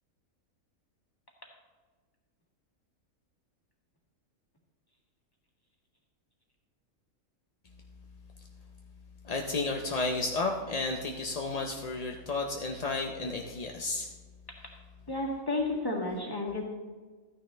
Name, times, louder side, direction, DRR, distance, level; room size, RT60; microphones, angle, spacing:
voice 1, 9.2-14.1, left 3 dB, 45° left, 2 dB, 0.5 m, -32 dB
voice 2, 15.1-16.6, left 2 dB, 15° left, -1 dB, 1.9 m, -31 dB
13.5 x 9.7 x 3.3 m, 1.4 s
omnidirectional pair, 1.5 m